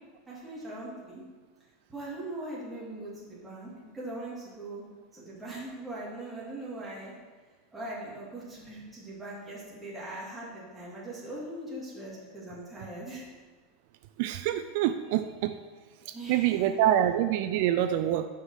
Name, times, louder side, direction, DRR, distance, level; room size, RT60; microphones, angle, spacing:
voice 1, 0.3-1.2 1.9-4.8 5.1-7.1 7.7-13.3 16.1-16.8, right 1 dB, 5° right, -7 dB, 2.5 m, -40 dB
voice 2, 14.2-15.5 16.3-18.3, right 11 dB, 60° right, 8 dB, 0.4 m, -26 dB
6.5 x 5.6 x 6.4 m, 1.4 s
supercardioid pair, 150°, 0 cm